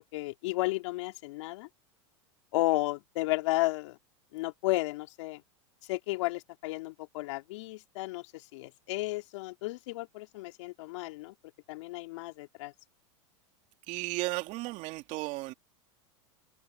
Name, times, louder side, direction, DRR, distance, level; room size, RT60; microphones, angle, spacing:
voice 1, 0.0-1.7 2.5-4.0 4.3-5.4 5.9-11.3 11.7-12.7, left 20 dB, 70° left, 3.2 m, -33 dB
voice 2, 13.9-15.5, right 20 dB, 50° right, 3.0 m, -34 dB
hypercardioid pair, 115°, 16 cm